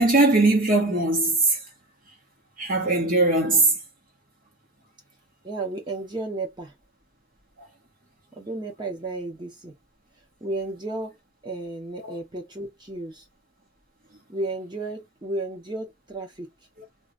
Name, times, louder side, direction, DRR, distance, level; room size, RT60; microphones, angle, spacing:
voice 1, 0.0-1.6 2.6-3.8 12.0-12.1, right 2 dB, 45° right, 1.5 m, -20 dB
voice 2, 5.4-6.7 8.4-9.8 10.4-11.1 11.4-13.2 14.3-16.5, right 2 dB, 25° right, 1.1 m, -33 dB
3.0 x 3.0 x 2.6 m
head